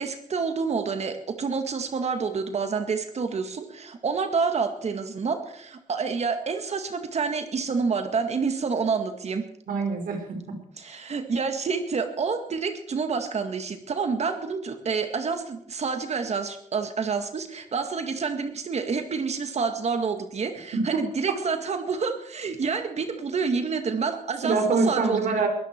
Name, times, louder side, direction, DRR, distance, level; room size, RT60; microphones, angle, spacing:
voice 1, 0.0-9.4 10.8-25.5, right 5 dB, 50° right, 7 dB, 2.0 m, -28 dB
voice 2, 9.7-10.6 20.7-21.0 24.4-25.5, right 4 dB, 85° right, 5 dB, 4.4 m, -25 dB
22.0 x 14.0 x 4.6 m, 0.72 s
cardioid pair, 115°, 14 cm